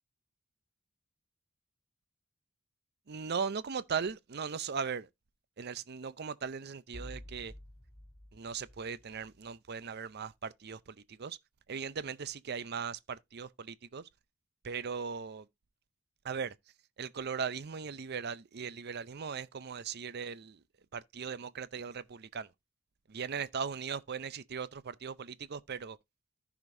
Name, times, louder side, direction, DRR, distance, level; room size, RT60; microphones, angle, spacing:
voice 1, 3.1-5.1 5.6-7.5 8.3-11.4 11.7-14.1 14.6-15.5 16.2-16.6 17.0-20.6 20.9-22.5 23.1-26.0, right 6 dB, 50° right, 0.6 m, -38 dB
sound 1, 6.9-9.8, left 1 dB, 25° left, 1.7 m, -50 dB
14.5 x 5.1 x 2.6 m
head